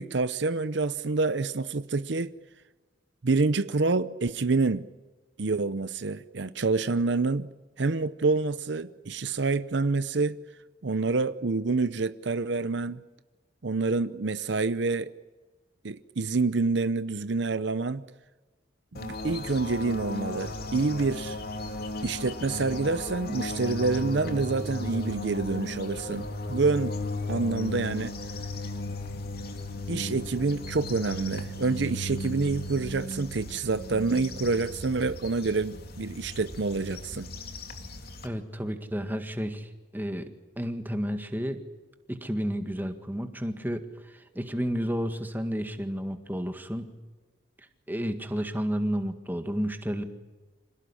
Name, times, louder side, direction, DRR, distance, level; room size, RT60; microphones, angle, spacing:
voice 1, 0.0-2.3 3.2-4.9 5.4-7.5 7.8-10.4 10.8-13.0 13.6-15.1 15.8-18.0 19.0-21.4 22.0-27.0 27.3-28.1 29.9-37.3, right 3 dB, 60° right, 14 dB, 0.7 m, -27 dB
sound 1, 18.9-38.3, left 2 dB, 50° left, 2.6 m, -36 dB
voice 2, 38.2-40.3 40.6-41.6 42.1-46.9 47.9-50.0, equal, 10° right, 7 dB, 1.8 m, -31 dB
26.5 x 18.0 x 9.9 m, 1.3 s
head